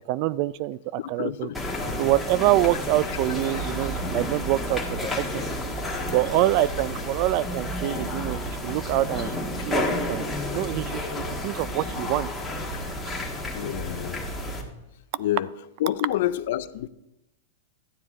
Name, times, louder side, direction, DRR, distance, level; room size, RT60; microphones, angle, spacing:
voice 1, 0.1-1.5 2.0-5.4 6.1-12.3 12.8-12.9, right 16 dB, 45° right, 20 dB, 0.3 m, -26 dB
voice 2, 1.0-1.6 13.5-14.2 15.2-15.5 15.8-16.9, left 13 dB, 65° left, 15 dB, 0.5 m, -28 dB
sound 1, 1.5-14.6, left 1 dB, 5° left, 1.6 m, -31 dB
12.5 x 9.5 x 3.6 m, 0.89 s
supercardioid pair, 140°, 0 cm